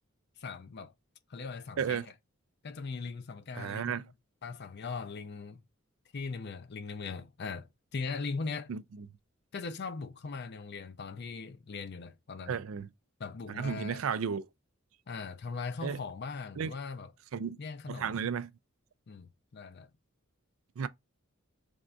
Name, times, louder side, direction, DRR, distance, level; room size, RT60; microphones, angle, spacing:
voice 1, 0.4-0.9 1.3-2.1 2.6-4.1 4.4-5.6 6.1-8.7 9.5-12.6 13.2-14.0 15.1-17.1 17.6-18.3 19.1-19.9, left 4 dB, 55° left, 0.5 m, -40 dB
voice 2, 3.6-4.0 8.7-8.8 12.5-12.9 13.6-14.5 15.8-16.0 16.6-16.7 17.3-17.6 17.9-18.5 20.8-20.9, right 6 dB, 75° right, 0.4 m, -33 dB
3.5 x 2.6 x 4.3 m
head